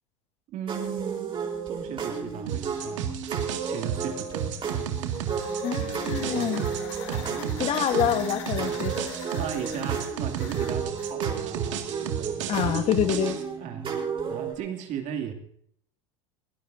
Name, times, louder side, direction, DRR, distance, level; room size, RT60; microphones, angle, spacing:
voice 1, 0.5-1.4 1.7-4.9 5.8-6.8 7.1-7.4 8.0-8.9 9.4-12.9 13.6-14.0 14.2-15.3, right 8 dB, 50° right, 4 dB, 2.8 m, -37 dB
sound 1, 0.7-14.5, right 6 dB, 35° right, 4.0 m, -33 dB
sound 2, 2.5-13.4, right 9 dB, 80° right, 2.2 m, -33 dB
sound 3, 4.9-11.2, left 9 dB, 70° left, 2.7 m, -44 dB
voice 2, 5.6-6.6 7.6-8.9 12.5-13.4, left 10 dB, 40° left, 9 dB, 1.4 m, -26 dB
22.5 x 17.0 x 2.7 m, 0.65 s
hypercardioid pair, 100°, 16 cm